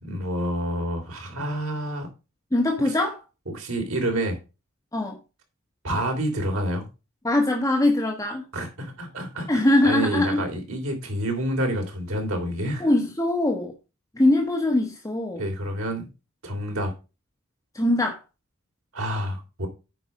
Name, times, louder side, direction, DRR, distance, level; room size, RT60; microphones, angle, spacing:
voice 1, 0.0-2.1 3.5-4.4 5.8-6.9 8.5-12.9 15.4-16.1 16.4-16.9 18.9-19.7, right 1 dB, 75° right, 3.1 m, -28 dB
voice 2, 2.5-3.2 4.9-5.2 7.2-8.4 9.5-10.4 12.8-13.7 14.1-15.4 17.7-18.2, left 1 dB, 15° left, 1.3 m, -22 dB
9.1 x 5.3 x 5.3 m
head